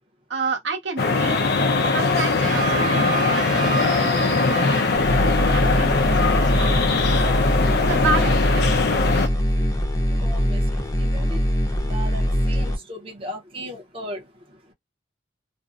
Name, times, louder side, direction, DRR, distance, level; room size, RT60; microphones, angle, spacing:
voice 1, 0.3-1.5 1.9-7.3 7.8-9.3, right 4 dB, 75° right, 0.9 m, -31 dB
sound 1, 1.0-9.3, left 4 dB, 60° left, 0.5 m, -21 dB
sound 2, 2.4-5.7, right 3 dB, 45° right, 1.1 m, -29 dB
sound 3, 5.0-12.8, equal, 20° left, 0.6 m, -22 dB
voice 2, 10.2-11.4 11.8-14.7, equal, 30° right, 0.7 m, -37 dB
2.5 x 2.0 x 2.4 m
head